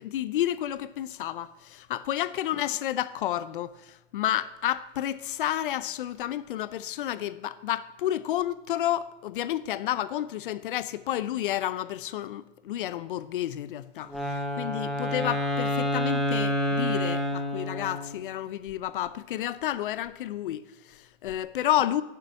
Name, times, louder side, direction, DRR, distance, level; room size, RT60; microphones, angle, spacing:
voice 1, 0.0-22.0, left 12 dB, 45° left, 0.7 m, -31 dB
Wind instrument woodwind instrument, 14.1-18.3, left 1 dB, ahead, 0.4 m, -28 dB
11.5 x 6.5 x 8.2 m
hypercardioid pair, 150°, 36 cm